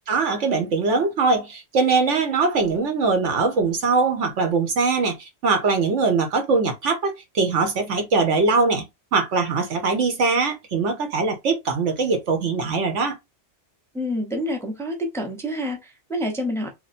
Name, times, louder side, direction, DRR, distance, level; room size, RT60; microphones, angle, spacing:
voice 1, 0.1-8.8 9.1-13.2, right 4 dB, 85° right, 1.3 m, -22 dB
voice 2, 13.9-16.7, equal, 5° left, 0.7 m, -28 dB
3.1 x 2.2 x 4.1 m
omnidirectional pair, 1.2 m